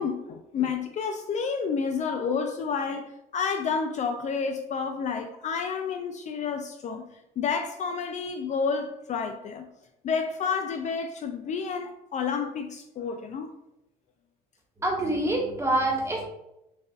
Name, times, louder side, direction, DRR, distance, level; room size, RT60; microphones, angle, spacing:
voice 1, 0.0-3.0 3.3-7.0 7.4-9.7 10.0-13.5, left 5 dB, 45° left, 5 dB, 0.4 m, -30 dB
voice 2, 14.8-16.3, right 1 dB, 15° right, -1 dB, 1.3 m, -26 dB
6.4 x 2.5 x 2.4 m, 0.85 s
cardioid pair, 110°, 17 cm